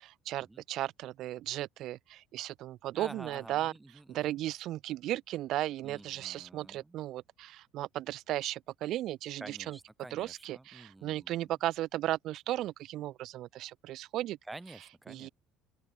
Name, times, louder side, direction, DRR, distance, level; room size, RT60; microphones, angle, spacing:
voice 1, 0.0-3.7 4.1-9.8 10.1-14.4 15.1-15.3, right 14 dB, 60° right, 0.3 m, -35 dB
voice 2, 2.9-4.4 5.8-7.0 9.4-11.5 14.5-15.3, right 2 dB, 10° right, 0.9 m, -49 dB
open air
cardioid pair, 110°, 0 cm